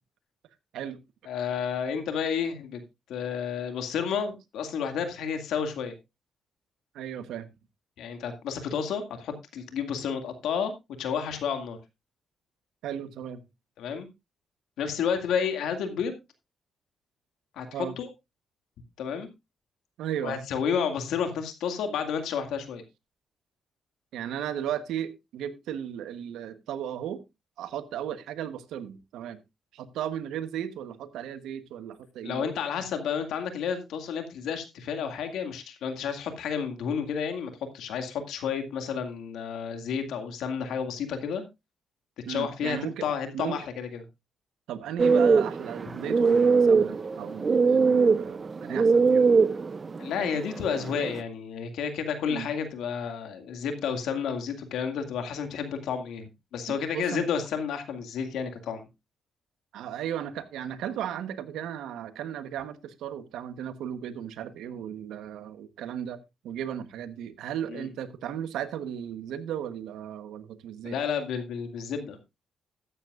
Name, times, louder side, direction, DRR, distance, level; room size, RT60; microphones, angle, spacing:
voice 1, 1.3-2.8 3.1-5.9 8.0-10.7 11.0-11.8 13.8-14.1 14.8-16.2 17.5-18.1 19.0-19.3 20.2-22.8 32.2-41.4 42.3-44.0 50.0-58.9 67.7-67.9 70.8-72.2, left 7 dB, 85° left, 2.1 m, -31 dB
voice 2, 6.9-7.5 12.8-13.4 17.7-18.0 20.0-20.4 24.1-27.2 27.6-29.4 29.7-32.5 42.2-43.0 43.3-43.6 44.7-49.2 52.3-52.5 56.7-57.2 59.7-66.2 66.4-71.0, right 10 dB, 90° right, 1.1 m, -35 dB
sound 1, 45.0-51.2, right 5 dB, 40° right, 0.6 m, -22 dB
13.5 x 10.0 x 2.4 m
cardioid pair, 75°, 0 cm